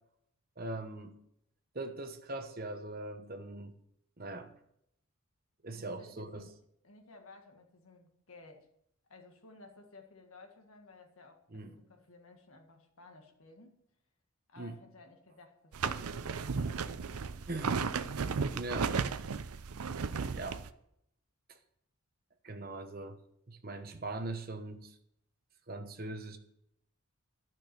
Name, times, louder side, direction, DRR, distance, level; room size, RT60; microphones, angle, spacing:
voice 1, 0.6-1.2 1.7-3.8 4.2-4.5 5.6-6.5 11.5-11.7 14.6-14.8 15.8-16.1 17.5-17.8 18.5-19.0 20.3-20.6 22.4-23.2 23.5-25.0 25.7-26.4, right 2 dB, 40° right, 7 dB, 1.0 m, -41 dB
voice 2, 5.7-6.5 6.8-8.7 9.1-13.8 14.5-17.4, left 3 dB, 75° left, 4 dB, 1.8 m, -56 dB
sound 1, 15.7-20.7, right 5 dB, 90° right, 0.6 m, -34 dB
12.0 x 6.2 x 6.9 m, 0.75 s
head